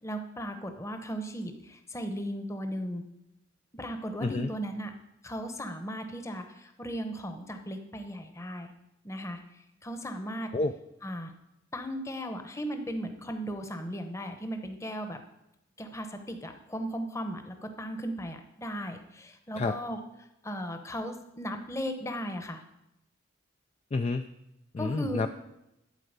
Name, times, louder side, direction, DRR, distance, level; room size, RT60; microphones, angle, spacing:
voice 1, 0.0-3.0 3.7-4.9 5.2-8.7 9.0-9.4 9.8-10.5 11.0-11.3 11.7-15.2 15.8-20.0 20.4-22.6 24.8-25.2, equal, 15° left, 6 dB, 0.9 m, -36 dB
voice 2, 23.9-24.3 24.7-25.3, left 3 dB, 30° left, 7 dB, 0.3 m, -29 dB
11.5 x 4.7 x 8.0 m, 0.87 s
head